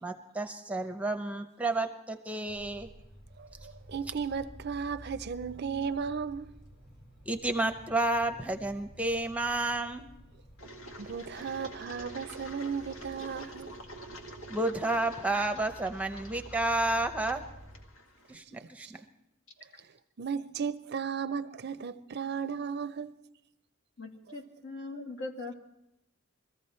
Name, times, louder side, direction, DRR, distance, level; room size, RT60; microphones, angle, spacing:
voice 1, 0.0-2.9 7.3-10.1 14.5-17.4 18.3-19.0, right 2 dB, 5° right, 0.7 m, -31 dB
sound 1, 2.5-17.8, equal, 50° left, 3.7 m, -52 dB
voice 2, 3.4-6.5 11.0-13.7 18.8-18.9 20.2-23.2, right 6 dB, 50° right, 0.5 m, -35 dB
Engine, 10.6-18.3, right 1 dB, 85° left, 1.9 m, -47 dB
voice 3, 24.0-25.6, left 2 dB, 70° left, 2.2 m, -40 dB
23.0 x 14.5 x 4.3 m
head